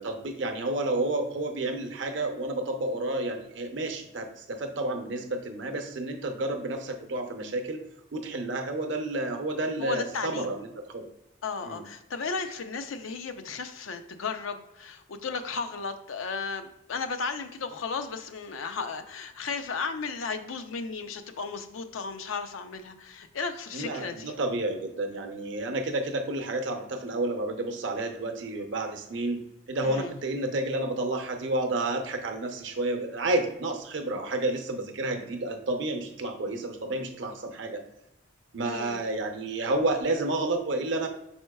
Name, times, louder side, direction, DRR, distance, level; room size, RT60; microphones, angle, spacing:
voice 1, 0.0-7.8 8.1-11.1 11.7-11.8 23.7-29.4 29.7-37.8 38.5-41.1, right 2 dB, 65° right, 5 dB, 0.6 m, -30 dB
voice 2, 9.8-10.5 11.4-24.3 29.8-30.1 38.6-39.1, left 4 dB, 85° left, 8 dB, 0.5 m, -35 dB
5.3 x 4.3 x 2.2 m, 0.89 s
head